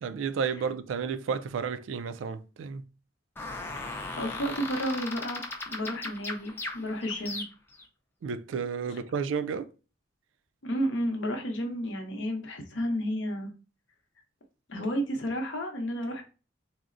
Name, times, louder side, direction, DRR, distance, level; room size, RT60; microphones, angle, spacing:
voice 1, 0.0-2.8 8.2-9.7 14.8-14.9, right 6 dB, 75° right, 0.3 m, -32 dB
sound 1, 3.4-7.8, left 2 dB, 10° left, 0.4 m, -37 dB
voice 2, 3.8-5.4 5.7-7.4 10.6-13.5 14.7-16.2, equal, 70° left, 0.8 m, -32 dB
3.6 x 2.0 x 2.5 m
head